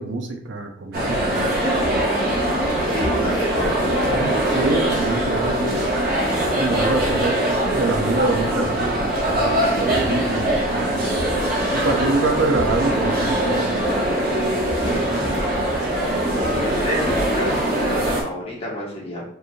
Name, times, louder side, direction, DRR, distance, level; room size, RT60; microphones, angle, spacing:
voice 1, 0.0-1.5 4.5-5.9 6.5-11.1 11.7-13.8, right 3 dB, 85° right, 4 dB, 0.7 m, -26 dB
sound 1, 0.9-18.2, right 1 dB, 50° right, 1.1 m, -22 dB
voice 2, 2.9-3.9 16.4-19.2, left 1 dB, 30° left, -5 dB, 1.6 m, -29 dB
4.5 x 2.6 x 3.1 m, 0.63 s
head